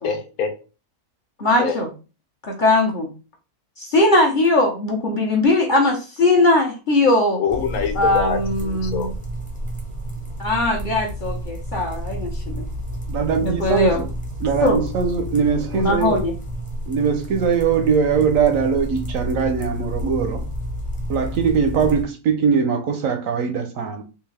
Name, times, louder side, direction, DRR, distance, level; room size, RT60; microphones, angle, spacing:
voice 1, 0.0-0.5 1.6-1.8 7.4-8.4 8.7-9.1, left 6 dB, 70° left, 1.1 m, -24 dB
voice 2, 1.4-1.9 2.4-3.1 3.8-7.4 7.9-9.1 10.4-12.7 13.4-14.0 14.6-14.8 15.7-16.3, left 2 dB, 40° left, 0.8 m, -19 dB
sound 1, 7.5-22.0, equal, 10° left, 0.4 m, -30 dB
voice 3, 13.1-14.1 14.4-16.2 16.9-20.4 21.1-24.0, right 6 dB, 70° right, 0.9 m, -21 dB
3.6 x 2.6 x 3.2 m
omnidirectional pair, 1.7 m